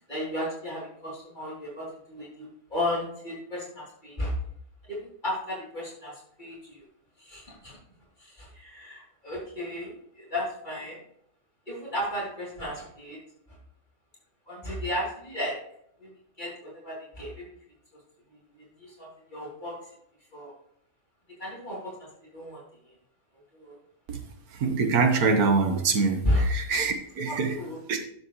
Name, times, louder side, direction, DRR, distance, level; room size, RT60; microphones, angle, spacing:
voice 1, 0.1-4.3 4.9-6.8 7.2-7.8 8.2-11.0 11.7-13.2 14.5-15.6 16.0-17.4 18.8-19.8 20.3-20.5 21.4-22.9 23.5-23.8 26.2-26.4 27.3-27.8, left 1 dB, 30° left, -5 dB, 3.3 m, -34 dB
voice 2, 24.5-27.6 27.9-28.0, right 4 dB, 90° right, 6 dB, 1.7 m, -24 dB
10.5 x 7.4 x 3.1 m, 0.71 s
omnidirectional pair, 1.5 m